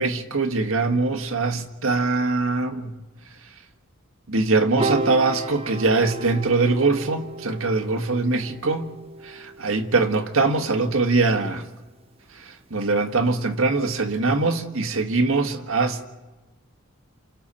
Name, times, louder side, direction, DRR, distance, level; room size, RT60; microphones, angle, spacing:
voice 1, 0.0-2.9 4.3-8.9 9.2-11.6 12.3-16.1, right 3 dB, 75° right, 1.6 m, -22 dB
Piano, 4.8-11.2, right 2 dB, 30° right, 1.2 m, -33 dB
29.0 x 28.5 x 4.3 m
head